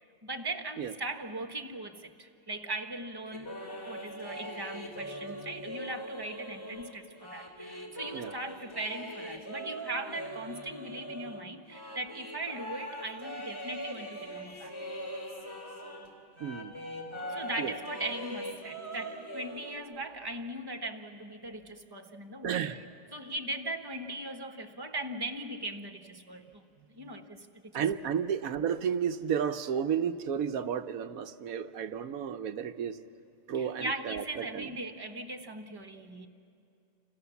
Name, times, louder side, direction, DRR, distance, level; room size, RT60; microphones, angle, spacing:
voice 1, 0.2-3.5 3.8-14.7 17.3-22.6 23.1-26.6 26.9-28.1 33.5-36.3, right 2 dB, 15° right, 6 dB, 1.3 m, -39 dB
sound 1, 3.3-16.1 16.4-19.8, equal, 20° left, 3.2 m, -41 dB
voice 2, 16.4-16.7 17.6-17.7 22.4-22.8 27.0-27.1 27.7-33.0 33.5-34.7, right 8 dB, 85° right, 9 dB, 1.3 m, -32 dB
28.5 x 27.5 x 7.1 m, 2.5 s
omnidirectional pair, 1.4 m